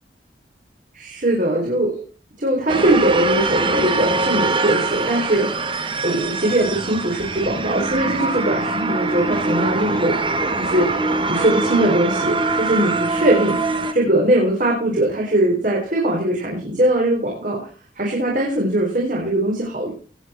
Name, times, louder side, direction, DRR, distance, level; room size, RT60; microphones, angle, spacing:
voice 1, 0.9-2.0 2.4-10.2 10.5-17.7 18.0-19.9, right 1 dB, 50° right, -2 dB, 4.4 m, -21 dB
sound 1, 2.7-13.9, right 3 dB, 30° right, 1.4 m, -23 dB
19.5 x 9.4 x 4.4 m, 0.39 s
head